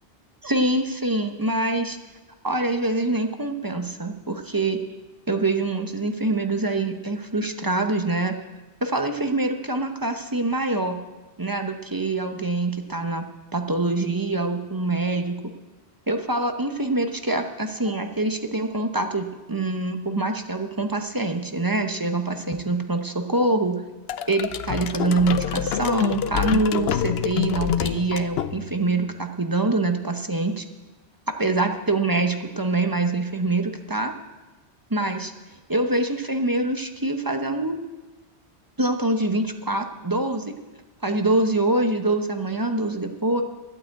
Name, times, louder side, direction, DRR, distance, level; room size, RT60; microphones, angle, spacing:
voice 1, 0.4-2.0 2.4-4.8 5.3-8.4 8.8-11.0 11.4-13.3 13.5-15.5 16.1-23.8 24.3-30.6 31.4-34.1 34.9-35.3 35.7-37.8 38.8-40.5 41.0-43.4, right 2 dB, 20° right, 5 dB, 0.9 m, -25 dB
sound 1, 24.1-28.9, left 9 dB, 70° left, 0.8 m, -27 dB
11.5 x 8.8 x 8.2 m, 1.1 s
omnidirectional pair, 1.1 m